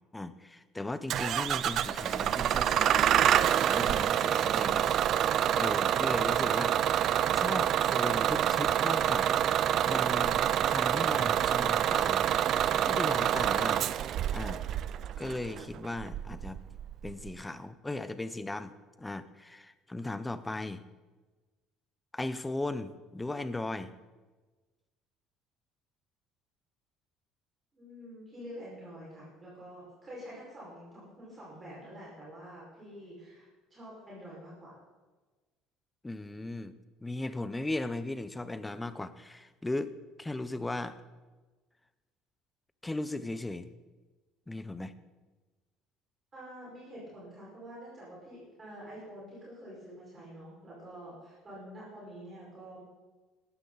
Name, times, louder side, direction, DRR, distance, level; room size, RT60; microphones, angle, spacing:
voice 1, 0.1-3.1 3.7-4.9 5.5-6.8 7.3-12.3 12.9-13.9 14.3-14.6 15.2-16.6 17.0-20.8 22.1-23.9 36.0-36.7 37.0-39.9 40.2-41.0 42.8-43.7 44.5-44.9, left 2 dB, 10° left, 13 dB, 0.7 m, -37 dB
Bus / Engine starting, 1.1-17.3, right 10 dB, 45° right, 0.5 m, -27 dB
voice 2, 27.7-34.8 46.3-52.8, equal, 20° right, -7 dB, 5.2 m, -47 dB
17.5 x 13.0 x 4.0 m, 1.3 s
cardioid pair, 145°, 0 cm